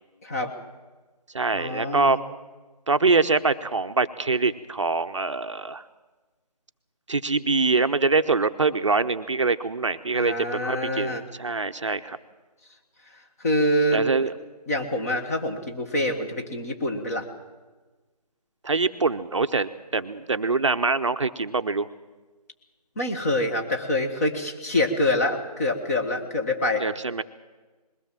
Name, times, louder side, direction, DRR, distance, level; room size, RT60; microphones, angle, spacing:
voice 1, 0.2-0.5 1.5-2.2 10.1-11.2 13.4-14.3 14.7-17.2 22.9-26.8, left 1 dB, 25° left, 4 dB, 1.6 m, -26 dB
voice 2, 1.3-2.2 2.9-5.8 7.1-10.3 10.6-12.2 13.9-14.3 18.6-21.9 26.8-27.2, right 3 dB, 50° right, 9 dB, 0.8 m, -24 dB
21.0 x 16.5 x 7.5 m, 1.3 s
figure-of-eight pair, 160°, 21 cm